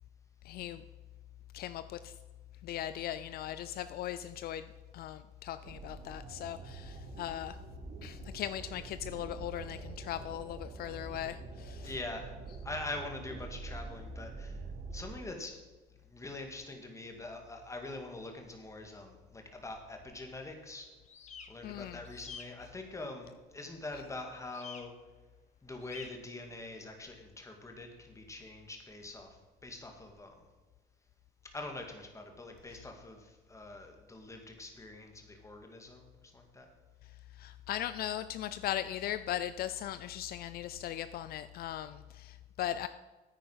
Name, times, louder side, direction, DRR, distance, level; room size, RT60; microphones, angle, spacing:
voice 1, 0.5-0.8 1.5-2.1 2.6-4.6 4.9-7.6 8.0-11.9 21.6-22.0 37.4-42.9, left 12 dB, 65° left, 12 dB, 0.5 m, -38 dB
sound 1, 5.6-15.2, right 3 dB, 50° right, 1.5 m, -45 dB
voice 2, 11.8-12.3 12.6-14.6 14.9-15.5 16.1-20.9 21.5-24.9 25.6-29.4 29.6-30.3 31.5-36.7 41.0-41.1, left 2 dB, 15° left, 3 dB, 2.2 m, -44 dB
sound 2, 21.1-21.5 22.0-22.5 24.5-24.8 25.8-26.1, left 6 dB, 45° left, 1.4 m, -47 dB
9.7 x 9.1 x 5.7 m, 1.2 s
cardioid pair, 110°, 17 cm